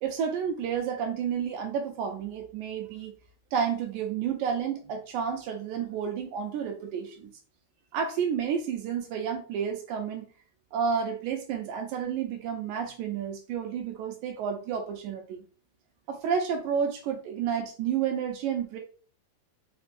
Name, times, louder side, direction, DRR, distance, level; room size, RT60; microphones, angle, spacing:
voice 1, 0.0-3.1 3.5-7.3 7.9-10.3 10.7-15.4 16.1-18.8, right 7 dB, 80° right, 3 dB, 2.0 m, -30 dB
4.8 x 2.2 x 2.5 m, 0.38 s
omnidirectional pair, 3.5 m